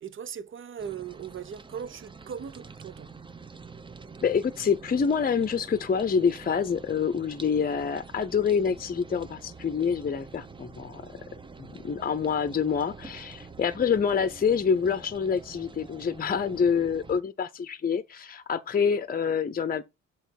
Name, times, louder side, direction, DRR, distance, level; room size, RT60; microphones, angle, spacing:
voice 1, 0.0-3.2, right 8 dB, 40° right, 0.8 m, -39 dB
sound 1, 0.8-17.2, right 4 dB, 15° right, 0.7 m, -46 dB
voice 2, 4.2-11.1 11.6-19.8, left 6 dB, 30° left, 0.7 m, -26 dB
8.2 x 3.1 x 5.8 m
cardioid pair, 90°, 30 cm